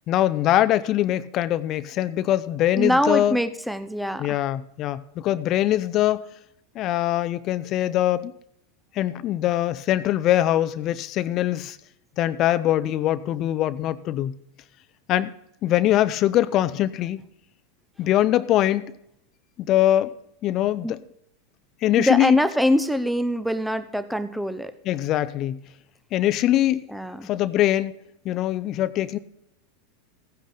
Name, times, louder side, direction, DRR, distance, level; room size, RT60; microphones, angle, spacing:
voice 1, 0.1-3.4 4.2-6.2 6.8-8.3 9.0-11.8 12.2-14.3 15.1-15.3 15.6-17.2 18.0-18.9 19.7-20.2 20.4-21.0 21.8-22.4 24.9-25.6 26.1-26.8 27.2-27.9 28.2-29.2, left 13 dB, 45° left, 14 dB, 0.5 m, -22 dB
voice 2, 2.8-4.4 20.8-20.9 22.0-24.7 26.9-27.3, equal, ahead, 12 dB, 0.7 m, -24 dB
15.5 x 10.0 x 3.9 m, 0.78 s
hypercardioid pair, 95°, 0 cm